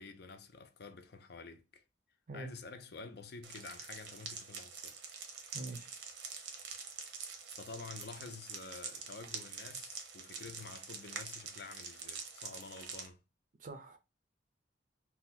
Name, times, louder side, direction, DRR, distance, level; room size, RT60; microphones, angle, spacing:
voice 1, 0.0-1.8 2.3-5.0 7.6-13.2, left 4 dB, 65° left, 0.5 m, -49 dB
sound 1, 3.4-13.1, right 5 dB, 85° right, 0.8 m, -46 dB
voice 2, 5.5-6.0 13.6-14.0, right 2 dB, 50° right, 0.5 m, -44 dB
2.7 x 2.2 x 4.0 m
head